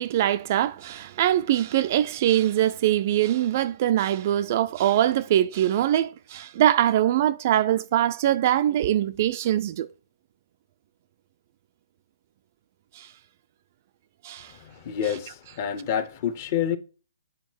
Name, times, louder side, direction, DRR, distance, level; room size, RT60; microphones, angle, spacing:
voice 1, 0.0-9.9 13.0-13.1 14.2-14.5 15.1-15.2, right 12 dB, 40° right, 0.3 m, -23 dB
voice 2, 14.9-16.8, left 9 dB, 35° left, 0.8 m, -27 dB
8.0 x 4.1 x 4.6 m
figure-of-eight pair, 140°, 2 cm